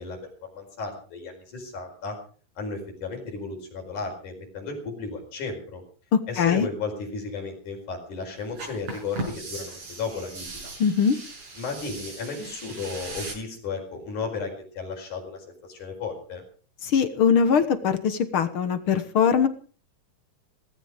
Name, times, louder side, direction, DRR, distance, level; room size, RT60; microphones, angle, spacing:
voice 1, 0.0-2.1 2.6-5.8 6.3-10.7 11.6-16.4, left 4 dB, 80° left, 2 dB, 6.2 m, -34 dB
voice 2, 6.1-6.7 10.8-11.2 16.8-19.5, left 7 dB, 55° left, 11 dB, 1.6 m, -21 dB
sound 1, 8.5-13.3, right 2 dB, 65° right, 7.2 m, -38 dB
18.0 x 15.0 x 5.1 m, 0.41 s
omnidirectional pair, 3.5 m